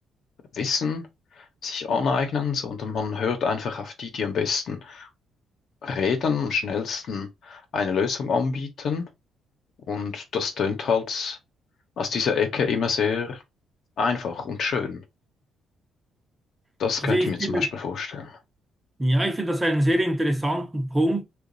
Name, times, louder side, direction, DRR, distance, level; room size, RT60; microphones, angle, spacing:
voice 1, 0.5-1.1 1.4-5.1 5.8-9.1 9.9-11.4 12.0-13.4 14.0-15.0 16.8-18.4, left 5 dB, 65° left, 1.0 m, -27 dB
voice 2, 17.0-17.6 19.0-21.2, right 1 dB, 15° right, 0.8 m, -23 dB
2.9 x 2.5 x 3.9 m
cardioid pair, 90°, 0 cm